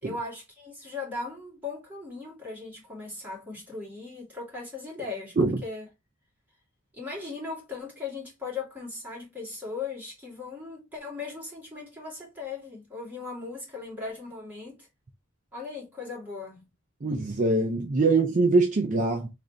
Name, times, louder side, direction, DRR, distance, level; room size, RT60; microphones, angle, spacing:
voice 1, 0.0-5.9 6.9-14.9 15.5-16.6, left 4 dB, 10° right, 1.9 m, -38 dB
voice 2, 17.0-19.3, right 3 dB, 40° right, 0.4 m, -23 dB
3.3 x 2.5 x 3.8 m
head